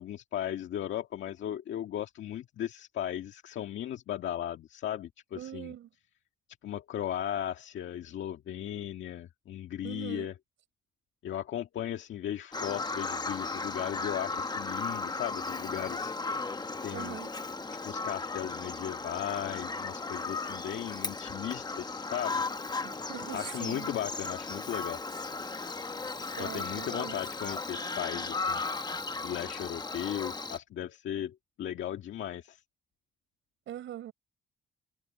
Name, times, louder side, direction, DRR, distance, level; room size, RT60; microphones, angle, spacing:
voice 1, 0.0-5.7 6.6-10.3 11.2-16.2 16.8-17.2 17.8-22.4 23.3-25.0 26.4-28.6 29.2-32.6, left 11 dB, 70° left, 1.8 m, -36 dB
voice 2, 5.4-5.9 9.8-10.3 16.9-17.3 22.8-23.9 26.3-27.2 33.7-34.1, right 11 dB, 75° right, 5.3 m, -42 dB
Bird vocalization bird call bird song, 12.5-30.6, left 3 dB, 20° left, 1.2 m, -36 dB
cardioid pair, 90°, 20 cm